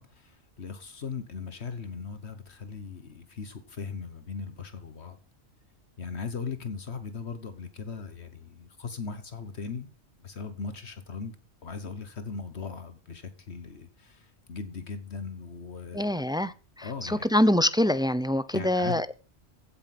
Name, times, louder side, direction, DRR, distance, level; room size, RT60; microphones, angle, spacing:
voice 1, 0.0-5.2 6.0-9.9 10.2-11.3 11.6-16.2 16.8-17.3 18.5-19.0, left 5 dB, 70° left, 1.6 m, -38 dB
voice 2, 15.9-19.1, left 1 dB, 5° right, 0.5 m, -25 dB
15.5 x 8.6 x 6.0 m
omnidirectional pair, 1.2 m